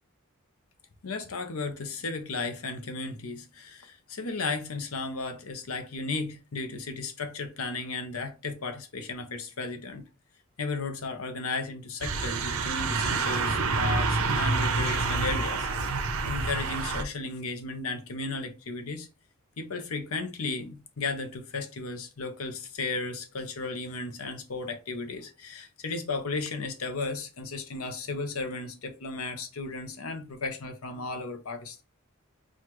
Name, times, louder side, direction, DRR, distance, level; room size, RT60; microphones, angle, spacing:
voice 1, 1.0-10.0 10.6-15.7 15.9-19.1 19.6-31.8, left 3 dB, 85° left, 0.8 m, -35 dB
sound 1, 12.0-17.0, right 4 dB, 75° right, 0.7 m, -27 dB
6.3 x 2.4 x 3.0 m
head